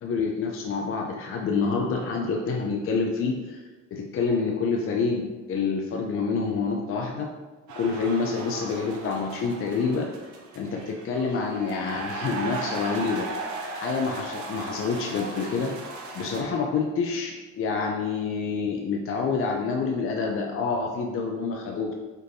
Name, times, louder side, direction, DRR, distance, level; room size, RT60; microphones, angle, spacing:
voice 1, 0.0-3.6 3.9-7.3 7.8-10.1 10.5-13.3 13.7-15.7 16.1-22.0, left 4 dB, 45° left, 1 dB, 0.5 m, -27 dB
sound 1, 7.7-16.4, right 3 dB, 75° right, 0.7 m, -37 dB
4.3 x 3.2 x 2.6 m, 1.3 s
cardioid pair, 90°, 30 cm